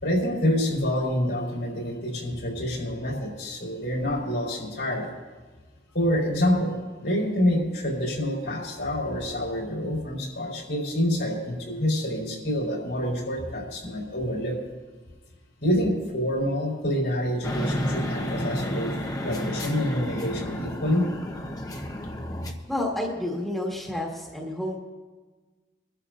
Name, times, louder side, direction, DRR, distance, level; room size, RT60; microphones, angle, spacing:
voice 1, 0.0-5.1 5.9-14.6 15.6-18.9 19.2-21.1, left 1 dB, 75° left, -2 dB, 4.2 m, -27 dB
sound 1, 17.4-22.5, left 1 dB, 20° left, 0.9 m, -31 dB
voice 2, 22.7-24.8, left 1 dB, ahead, -3 dB, 1.6 m, -30 dB
24.5 x 12.5 x 2.6 m, 1.3 s
head